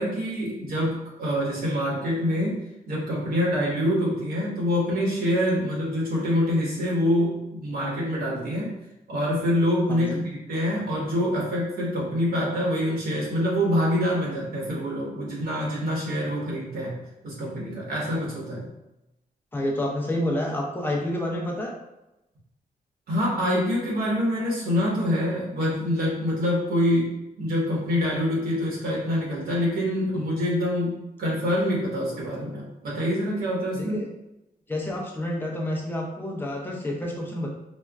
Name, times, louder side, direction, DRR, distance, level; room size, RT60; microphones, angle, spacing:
voice 1, 0.0-2.6 2.9-8.7 9.1-18.7 23.1-33.9, equal, 70° right, -4 dB, 1.1 m, -26 dB
voice 2, 9.9-10.3 19.5-21.8 33.7-34.1 34.7-37.5, left 1 dB, 15° left, -1 dB, 0.5 m, -29 dB
4.3 x 2.1 x 2.3 m, 0.92 s
wide cardioid pair, 160°, 16 cm